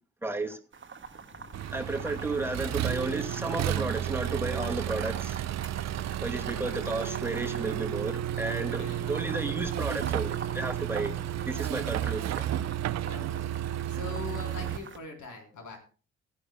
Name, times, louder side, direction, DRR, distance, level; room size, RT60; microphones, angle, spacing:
voice 1, 0.2-0.6 1.7-5.5 6.2-11.1 11.5-12.5, right 2 dB, 5° right, 2.3 m, -33 dB
sound 1, 0.7-15.0, right 5 dB, 35° right, 1.7 m, -45 dB
voice 2, 1.3-1.7 5.9-6.2 6.6-6.9 8.7-9.2 11.3-12.1 13.0-15.8, left 4 dB, 60° left, 3.8 m, -44 dB
Accelerating revving vroom, 1.5-14.8, right 11 dB, 50° right, 0.7 m, -32 dB
16.5 x 11.5 x 2.3 m
hypercardioid pair, 45°, 34 cm